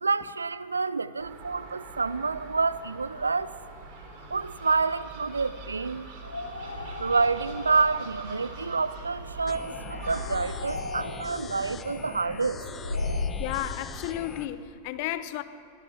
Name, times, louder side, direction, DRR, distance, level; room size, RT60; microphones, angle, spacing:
voice 1, 0.0-3.5 4.3-6.1 7.0-12.6, right 4 dB, 75° right, 0.5 m, -28 dB
Gull seagull, 1.2-10.2, right 4 dB, 45° right, 3.9 m, -44 dB
sound 1, 6.2-13.5, left 3 dB, 80° left, 1.7 m, -36 dB
sound 2, 9.5-14.5, left 5 dB, 20° left, 1.0 m, -42 dB
voice 2, 13.1-15.4, left 13 dB, 45° left, 0.8 m, -33 dB
22.0 x 16.5 x 7.2 m
figure-of-eight pair, 90°, 0 cm